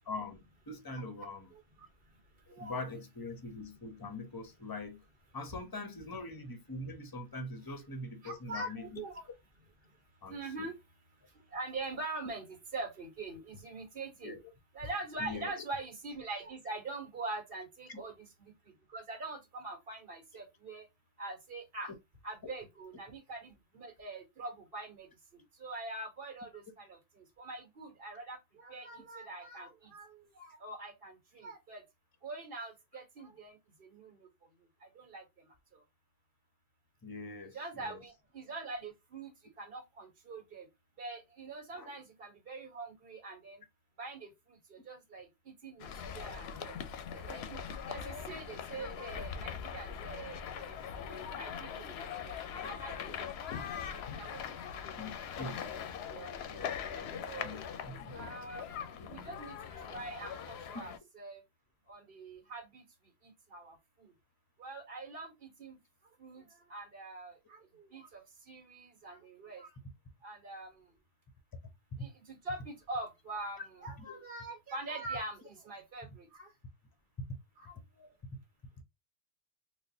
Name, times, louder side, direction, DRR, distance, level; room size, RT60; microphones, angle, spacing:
voice 1, 0.1-1.5 2.5-5.0 5.3-9.0 10.2-10.7 14.2-14.4 15.2-15.6 17.9-18.0 22.4-22.5 37.0-38.0 41.7-42.0 55.0-55.8 56.4-58.1 59.0-59.3 71.9-72.1 74.1-74.2 77.2-77.3, left 2 dB, 25° left, 0.6 m, -43 dB
voice 2, 8.2-9.2 10.3-10.7 11.5-14.4 14.7-18.1 18.4-18.5 18.9-20.9 21.2-21.9 22.2-25.1 25.6-31.8 32.2-33.6 33.9-34.2 34.9-35.2 37.5-39.3 39.6-40.7 41.0-43.6 44.0-44.3 44.7-46.7 47.1-50.8 51.1-51.9 52.2-52.3 52.6-53.3 53.7-53.8 54.2-54.4 55.4-55.5 56.1-56.4 57.2-57.6 58.1-58.8 59.1-59.5 59.9-61.4 61.9-62.8 63.5-63.7 64.6-65.7 66.2-66.4 66.7-69.7 70.2-70.7 72.0-76.5 77.6-78.1, right 2 dB, 50° right, 1.5 m, -43 dB
sound 1, 45.8-61.0, left 7 dB, 65° left, 0.8 m, -41 dB
4.0 x 2.4 x 2.7 m
omnidirectional pair, 1.2 m